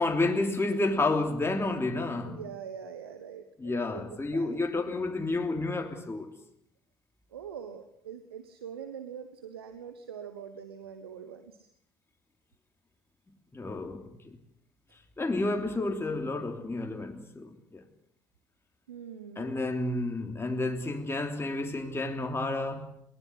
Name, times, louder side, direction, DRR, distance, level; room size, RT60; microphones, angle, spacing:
voice 1, 0.0-2.4 3.6-6.3 13.5-14.4 15.2-17.8 19.4-23.0, left 2 dB, 20° left, 3.2 m, -30 dB
voice 2, 2.2-4.5 7.3-11.7 18.9-19.5, right 8 dB, 90° right, 1.2 m, -43 dB
21.5 x 19.5 x 8.0 m
hypercardioid pair, 50°, 12 cm